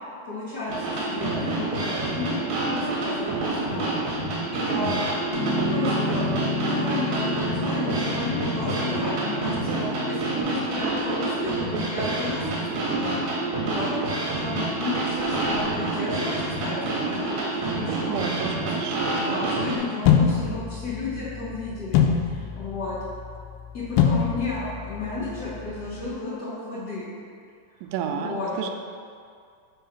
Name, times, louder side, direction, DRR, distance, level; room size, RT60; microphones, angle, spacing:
voice 1, 0.2-3.8 4.5-5.0 5.7-6.3 6.6-13.2 13.4-13.9 14.3-18.8 19.2-22.0 22.3-23.0 23.7-27.1 28.1-28.5, left 2 dB, 70° left, -9 dB, 0.9 m, -33 dB
sound 1, 0.7-19.8, right 2 dB, 75° right, 2.4 m, -28 dB
Piano, 5.3-10.4, left 2 dB, 50° left, 1.7 m, -30 dB
voice 2, 18.1-19.4 27.8-28.7, right 8 dB, 90° right, 5 dB, 2.2 m, -32 dB
sound 2, 20.1-26.1, left 7 dB, 85° left, 2.2 m, -25 dB
5.4 x 3.7 x 5.7 m, 2.2 s
omnidirectional pair, 3.8 m